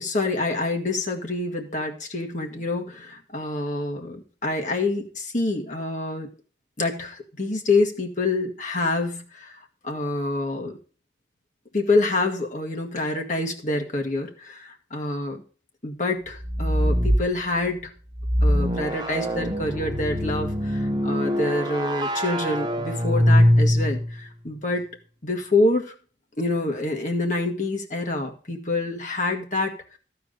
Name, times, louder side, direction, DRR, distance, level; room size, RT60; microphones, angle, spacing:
voice 1, 0.0-6.3 6.8-10.8 11.7-15.4 15.8-17.9 18.4-24.8 25.2-25.9 26.4-29.7, left 2 dB, 45° left, 2 dB, 1.7 m, -26 dB
sound 1, 16.4-17.3 18.1-24.2, equal, 25° right, 0.9 m, -23 dB
14.0 x 4.8 x 6.6 m, 0.38 s
head